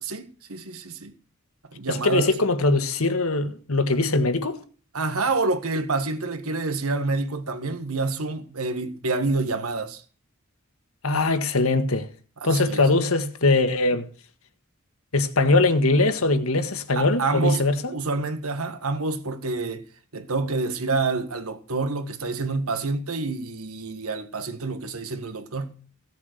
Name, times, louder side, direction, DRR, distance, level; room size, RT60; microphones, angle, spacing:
voice 1, 0.0-1.1 1.7-2.3 4.9-10.0 12.4-12.9 16.9-17.6 17.9-19.8 20.1-25.8, right 3 dB, 85° right, 1.7 m, -28 dB
voice 2, 1.9-4.6 11.0-12.1 12.4-14.1 15.1-17.9, left 2 dB, 75° left, 1.7 m, -21 dB
16.5 x 7.3 x 8.0 m
head